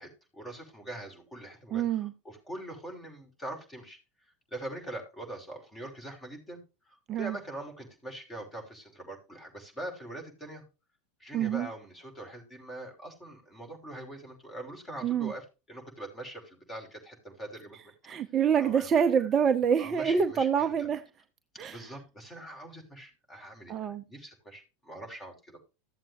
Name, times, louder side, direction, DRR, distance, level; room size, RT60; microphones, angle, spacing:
voice 1, 0.0-4.0 4.5-6.6 6.9-10.6 11.2-17.8 18.6-18.9 19.8-20.7 21.7-25.6, right 1 dB, 15° left, 5.7 m, -43 dB
voice 2, 1.7-2.1 7.1-7.4 11.3-11.7 15.0-15.3 18.1-21.0 21.6-21.9 23.7-24.0, right 7 dB, 30° right, 0.7 m, -26 dB
16.0 x 7.5 x 2.7 m
figure-of-eight pair, 85°, 0 cm